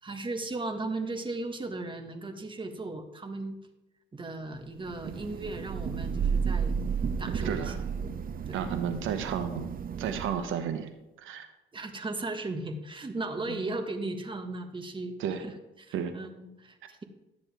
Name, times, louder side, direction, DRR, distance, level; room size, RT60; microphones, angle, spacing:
voice 1, 0.0-3.6 4.1-6.7 7.2-7.9 8.5-8.6 11.7-15.1 15.4-17.0, right 2 dB, 25° right, 6 dB, 1.4 m, -36 dB
Thunder / Rain, 4.8-10.6, right 6 dB, 45° right, 0.7 m, -32 dB
voice 2, 7.4-7.8 8.5-9.7 10.0-10.9 11.2-11.5 13.5-13.6 15.2-15.4 15.9-16.1, right 8 dB, 90° right, 7 dB, 1.1 m, -32 dB
12.5 x 9.6 x 3.5 m, 0.99 s
cardioid pair, 90°, 20 cm